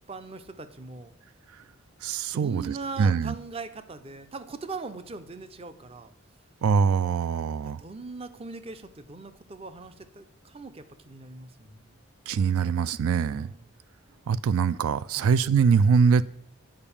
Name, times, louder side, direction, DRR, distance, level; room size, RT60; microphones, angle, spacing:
voice 1, 0.1-1.1 2.3-6.1 7.6-11.9 13.3-13.6 15.1-15.3, right 4 dB, 25° right, 0.5 m, -40 dB
voice 2, 2.0-3.3 6.6-7.8 12.3-13.5 14.3-16.3, right 6 dB, 85° right, 0.3 m, -23 dB
8.9 x 4.9 x 7.0 m
head